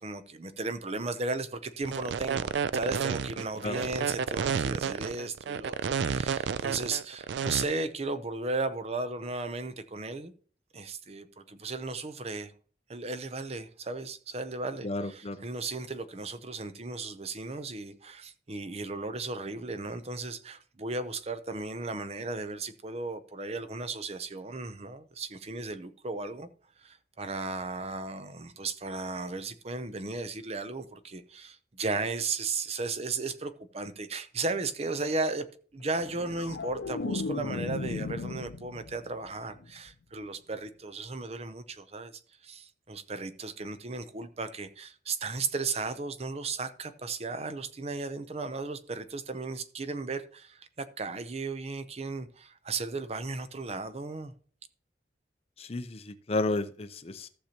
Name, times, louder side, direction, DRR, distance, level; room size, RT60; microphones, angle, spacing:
voice 1, 0.0-10.3 10.7-12.5 12.9-26.5 26.8-35.4 35.7-42.1 42.4-54.3, right 3 dB, 35° right, 0.6 m, -35 dB
sound 1, 1.9-7.6, right 6 dB, 80° right, 0.4 m, -30 dB
voice 2, 14.8-15.4 55.6-57.3, left 2 dB, 35° left, 0.6 m, -32 dB
sound 2, 36.0-39.2 39.5-39.9, left 3 dB, 85° left, 0.5 m, -36 dB
14.5 x 6.6 x 2.9 m
head